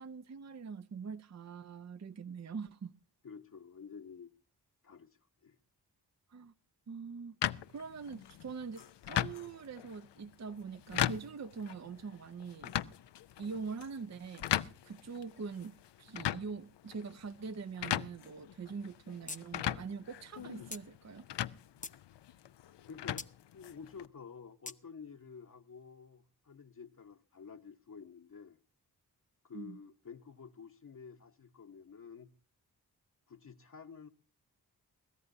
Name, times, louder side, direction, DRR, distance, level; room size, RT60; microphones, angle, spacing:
voice 1, 0.0-2.9 6.3-6.5 6.9-7.4 7.7-12.8 13.4-21.3 29.5-29.8, right 5 dB, 40° right, 0.7 m, -43 dB
voice 2, 3.2-4.3 4.8-5.6 22.9-23.2 23.5-28.6 29.4-32.3 33.3-34.1, left 6 dB, 50° left, 1.1 m, -50 dB
sound 1, 7.4-24.1, left 12 dB, 85° left, 0.6 m, -39 dB
sound 2, 19.3-19.4 19.7-19.8 20.7-20.8 21.5-22.0 23.2-23.3 24.7-24.8, left 3 dB, 20° left, 0.8 m, -43 dB
22.0 x 14.5 x 2.6 m
cardioid pair, 40°, 41 cm